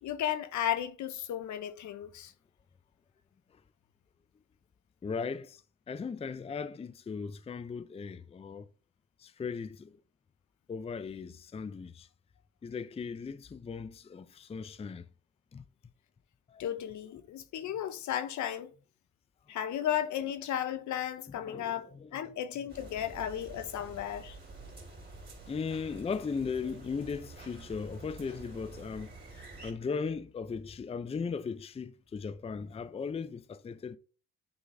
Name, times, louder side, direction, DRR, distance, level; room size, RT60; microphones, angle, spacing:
voice 1, 0.0-2.3 16.6-18.7 19.5-24.4, left 10 dB, 70° left, 0.9 m, -34 dB
voice 2, 5.0-5.6 5.9-8.7 9.2-10.0 10.7-12.1 12.6-15.0 15.5-15.6 16.5-16.6 21.3-22.6 25.5-29.1 29.6-34.0, left 5 dB, 20° left, 0.5 m, -38 dB
sound 1, 22.7-29.7, right 2 dB, 35° right, 3.5 m, -49 dB
9.5 x 3.9 x 3.3 m
cardioid pair, 90°, 30 cm